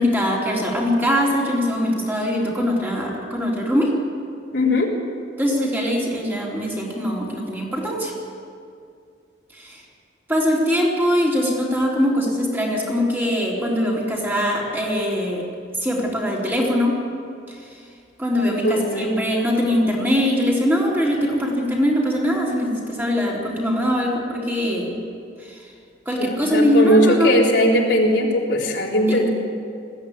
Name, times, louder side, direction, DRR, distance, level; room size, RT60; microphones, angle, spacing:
voice 1, 0.0-3.9 5.4-8.1 9.5-9.8 10.3-15.4 15.8-17.0 17.5-17.6 18.2-25.0 25.4-25.6 26.1-27.4 29.1-29.2, equal, 10° right, -4 dB, 3.7 m, -22 dB
voice 2, 4.5-4.9 18.6-19.1 26.2-29.3, equal, 70° left, -2 dB, 3.7 m, -19 dB
20.5 x 15.5 x 9.4 m, 2.3 s
head